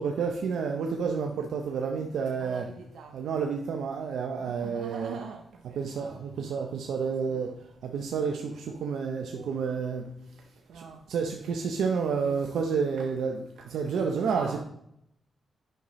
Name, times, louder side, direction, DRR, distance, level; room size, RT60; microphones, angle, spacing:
voice 1, 0.0-7.6 7.8-10.1 10.7-14.6, right 5 dB, 80° right, 2 dB, 0.6 m, -30 dB
9.2 x 5.5 x 3.1 m, 0.75 s
supercardioid pair, 55°, 0 cm